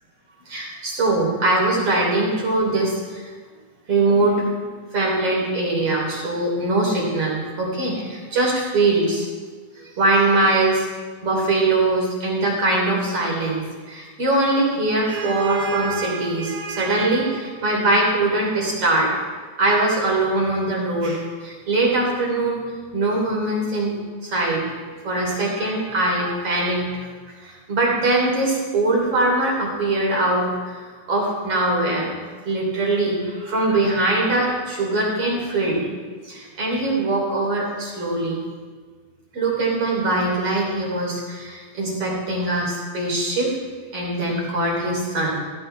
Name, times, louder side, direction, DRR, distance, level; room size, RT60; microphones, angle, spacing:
voice 1, 0.5-3.2 3.9-4.5 4.9-9.3 9.8-10.9 11.2-13.6 13.9-19.1 19.6-22.6 22.9-23.9 24.2-24.6 25.0-27.1 27.4-32.1 32.5-35.9 36.3-38.4 39.3-43.5 43.9-45.3, right 2 dB, 45° right, -2 dB, 4.1 m, -22 dB
16.5 x 16.0 x 3.3 m, 1.5 s
omnidirectional pair, 4.1 m